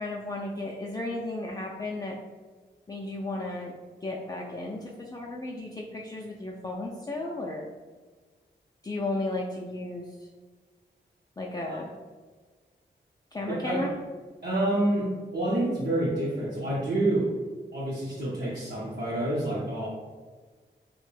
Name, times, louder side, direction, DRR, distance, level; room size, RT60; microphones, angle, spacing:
voice 1, 0.0-2.2 2.9-3.7 4.0-7.7 8.8-10.3 11.4-11.9 13.3-13.9, left 2 dB, 20° left, -3 dB, 0.3 m, -34 dB
voice 2, 13.5-13.8 14.4-17.3 17.7-19.9, right 1 dB, 60° right, -8 dB, 0.7 m, -28 dB
2.5 x 2.1 x 3.3 m, 1.4 s
cardioid pair, 45°, 19 cm